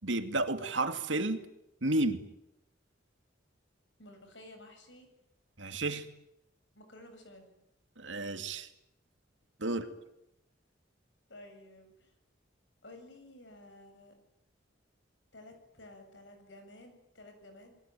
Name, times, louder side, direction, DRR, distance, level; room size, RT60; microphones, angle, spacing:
voice 1, 0.0-1.5 1.8-2.3 5.6-6.1 8.0-8.7 9.6-9.8, right 2 dB, 80° right, 8 dB, 2.5 m, -31 dB
voice 2, 4.0-5.1 6.7-7.5 9.7-9.9 11.3-12.1 12.8-14.1 15.3-17.8, left 1 dB, 70° left, 6 dB, 7.9 m, -53 dB
28.5 x 21.5 x 9.2 m, 0.83 s
head